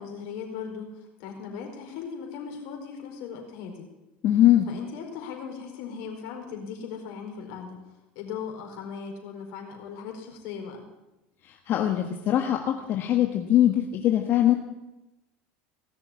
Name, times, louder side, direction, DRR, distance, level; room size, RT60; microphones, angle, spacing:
voice 1, 0.0-3.9 4.7-7.8 8.1-10.8, left 6 dB, 65° left, 2 dB, 4.7 m, -38 dB
voice 2, 4.2-4.7 11.4-14.5, left 12 dB, 50° left, 3 dB, 1.5 m, -22 dB
18.5 x 6.8 x 9.8 m, 0.98 s
hypercardioid pair, 85°, 5 cm